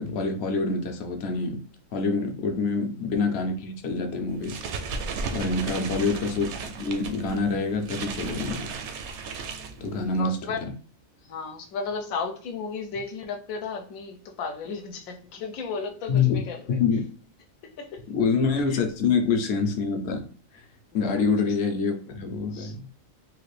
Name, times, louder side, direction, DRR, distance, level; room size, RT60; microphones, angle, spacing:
voice 1, 0.0-1.6 1.9-4.6 5.3-8.7 9.8-10.7 16.1-16.4 16.8-17.0 18.1-20.3 20.5-20.6 20.9-22.9, left 4 dB, 60° left, 0.8 m, -26 dB
sound 1, 4.3-10.2, right 4 dB, 65° right, 0.8 m, -35 dB
voice 2, 9.8-10.6 11.3-16.8 17.8-18.0 18.7-18.8 20.9-21.2 22.5-22.7, left 5 dB, 85° left, 1.0 m, -34 dB
3.2 x 2.5 x 3.2 m
omnidirectional pair, 1.4 m